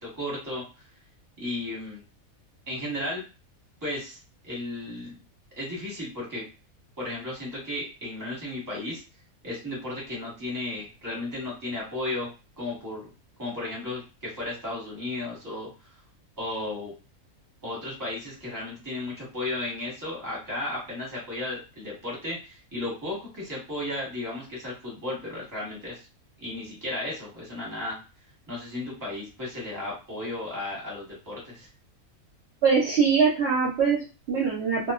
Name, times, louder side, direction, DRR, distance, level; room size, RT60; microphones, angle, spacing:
voice 1, 0.0-0.6 1.4-2.0 2.7-3.2 3.8-5.2 5.6-6.4 7.0-9.0 9.4-12.3 12.6-13.1 13.4-15.7 16.4-16.9 17.6-26.0 26.4-28.0 28.5-31.7, left 1 dB, 15° right, -5 dB, 1.1 m, -34 dB
voice 2, 32.6-34.9, right 5 dB, 55° right, -6 dB, 0.9 m, -23 dB
2.3 x 2.3 x 2.3 m, 0.32 s
omnidirectional pair, 1.5 m